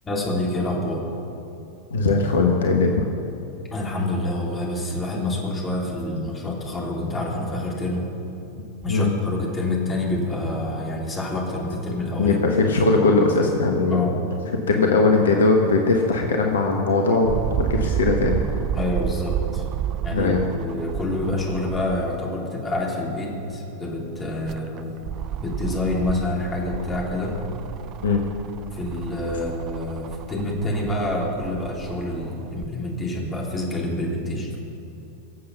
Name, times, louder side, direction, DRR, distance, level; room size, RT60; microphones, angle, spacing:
voice 1, 0.0-1.0 3.7-8.1 8.8-12.4 13.9-14.2 18.7-19.6 20.0-24.9 25.4-27.4 28.7-34.5, left 1 dB, 20° left, -2 dB, 3.6 m, -27 dB
voice 2, 1.9-3.0 8.9-9.1 12.2-14.2 14.7-18.4 20.1-20.4 28.0-28.2, left 3 dB, 65° left, 2 dB, 1.3 m, -20 dB
sound 1, 17.2-22.3 22.8-22.9 24.2-32.7 33.5-33.6, right 11 dB, 35° right, 0.4 m, -31 dB
23.0 x 7.8 x 5.9 m, 2.9 s
figure-of-eight pair, 90°, 0 cm